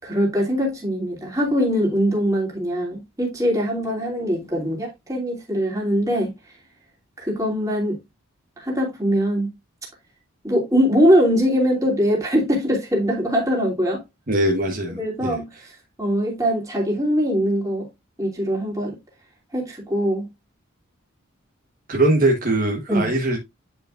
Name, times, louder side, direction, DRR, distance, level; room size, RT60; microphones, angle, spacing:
voice 1, 0.0-6.3 7.2-8.0 8.6-9.5 10.4-14.0 15.0-15.5 16.0-17.9 18.2-19.0 19.5-20.2 22.9-23.1, equal, 15° right, 2.8 m, -22 dB
voice 2, 14.3-15.4 21.9-23.4, right 1 dB, 40° right, 1.2 m, -21 dB
9.6 x 5.2 x 2.5 m
head